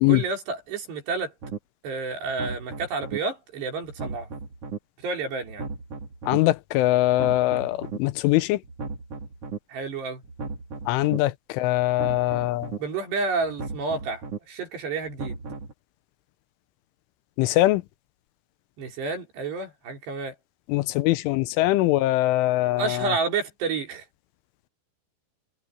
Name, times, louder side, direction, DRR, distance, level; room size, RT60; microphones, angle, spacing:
voice 1, 0.1-1.3 1.8-4.3 5.0-5.6 9.7-10.2 12.8-15.4 18.8-20.3 22.8-24.0, right 4 dB, 55° right, 6.2 m, -30 dB
sound 1, 1.4-1.6 2.2-3.2 3.8-4.8 5.4-6.4 7.0-8.0 8.6-9.6 10.2-11.2 11.8-12.8 13.4-14.4 15.0-15.7, right 4 dB, 35° right, 3.7 m, -36 dB
voice 2, 6.3-8.6 10.9-12.7 17.4-17.8 20.7-22.8, left 17 dB, 80° left, 3.2 m, -22 dB
omnidirectional pair, 5.8 m